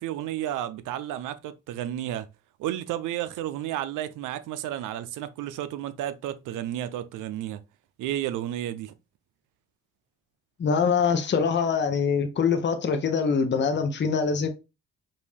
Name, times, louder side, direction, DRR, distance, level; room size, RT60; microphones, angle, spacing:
voice 1, 0.0-2.3 2.6-7.6 8.0-8.9, right 12 dB, 85° right, 0.5 m, -32 dB
voice 2, 10.6-14.5, left 5 dB, 35° left, 0.7 m, -24 dB
5.2 x 2.6 x 3.3 m
cardioid pair, 90°, 30 cm